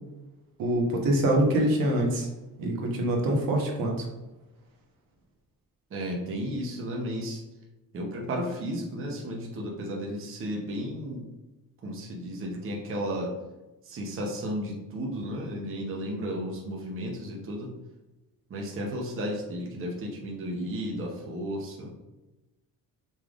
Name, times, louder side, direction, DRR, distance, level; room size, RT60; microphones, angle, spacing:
voice 1, 0.6-2.3 2.6-4.1, right 1 dB, 75° right, 0 dB, 1.1 m, -25 dB
voice 2, 5.9-7.4 7.9-11.2 11.8-13.3 13.9-17.7 18.5-21.9, equal, 35° right, -1 dB, 0.8 m, -33 dB
5.5 x 3.4 x 2.4 m, 1.0 s
cardioid pair, 160°, 35 cm